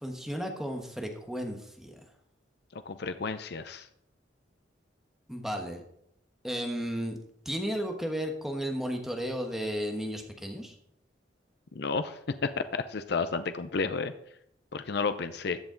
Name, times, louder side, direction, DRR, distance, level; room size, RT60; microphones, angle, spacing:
voice 1, 0.0-2.0 5.3-5.8 6.4-7.2 7.4-10.7, equal, ahead, 3 dB, 1.2 m, -34 dB
voice 2, 2.7-3.9 11.7-14.1 14.7-15.6, left 4 dB, 65° left, 10 dB, 0.6 m, -32 dB
14.0 x 8.2 x 3.9 m, 0.73 s
head